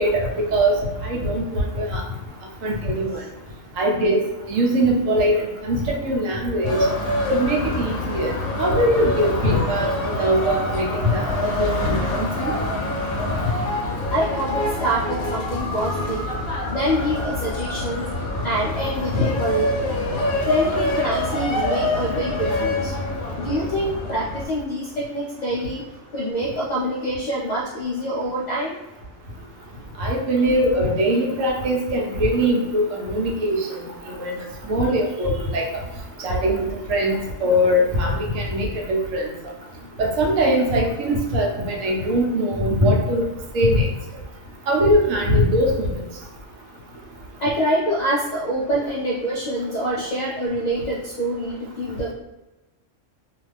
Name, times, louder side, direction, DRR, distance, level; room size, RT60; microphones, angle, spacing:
voice 1, 0.0-2.0 2.6-3.2 3.8-4.2 4.5-6.8 7.3-12.5 13.4-13.5 19.1-19.3 30.0-34.3 34.7-35.7 36.2-39.3 40.0-43.2 43.5-43.9 44.7-46.0, equal, 85° right, 0 dB, 1.0 m, -21 dB
sound 1, 6.6-24.4, left 1 dB, 60° left, 0.7 m, -26 dB
voice 2, 14.1-16.3 16.7-18.1 18.4-20.0 20.5-22.9 23.4-25.8 26.1-28.8 47.4-52.1, right 1 dB, 85° left, -3 dB, 0.3 m, -25 dB
2.4 x 2.3 x 3.2 m, 1.0 s
omnidirectional pair, 1.3 m